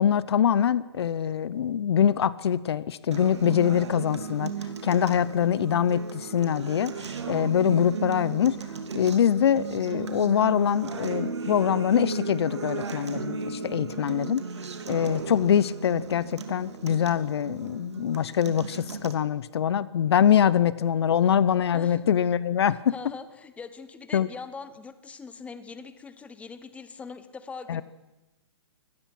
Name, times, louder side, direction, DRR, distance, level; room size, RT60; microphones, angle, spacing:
voice 1, 0.0-8.6 8.9-14.4 14.9-22.9 24.1-24.3 27.7-27.8, left 9 dB, 65° left, 19 dB, 0.8 m, -24 dB
Acoustic guitar, 3.1-19.1, right 5 dB, 75° right, 2.8 m, -36 dB
voice 2, 22.7-27.8, left 5 dB, 10° left, 12 dB, 1.1 m, -42 dB
24.5 x 18.0 x 6.0 m, 1.1 s
hypercardioid pair, 135°, 14 cm